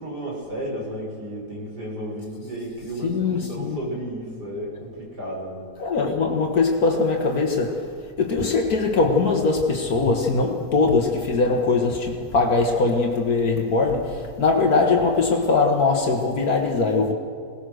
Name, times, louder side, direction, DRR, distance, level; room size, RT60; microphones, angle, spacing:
voice 1, 0.0-5.7, right 1 dB, 85° right, 6.4 m, -33 dB
voice 2, 3.0-3.8 5.8-17.1, left 3 dB, 65° left, 1.9 m, -21 dB
22.5 x 18.5 x 6.4 m
omnidirectional pair, 1.7 m